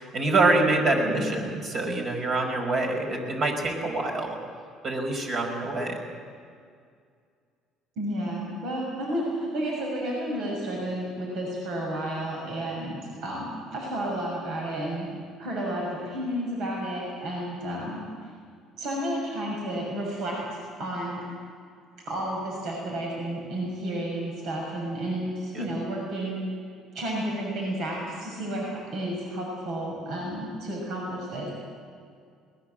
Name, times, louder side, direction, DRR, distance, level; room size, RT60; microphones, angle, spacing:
voice 1, 0.0-4.4 4.8-6.0 25.5-25.7, right 2 dB, 50° right, 2 dB, 5.4 m, -25 dB
voice 2, 8.0-15.1 15.4-18.0 18.8-21.2 22.0-26.5 26.9-31.5, right 1 dB, 75° right, -2 dB, 6.4 m, -31 dB
22.0 x 19.5 x 7.7 m, 2.2 s
supercardioid pair, 95°, 0 cm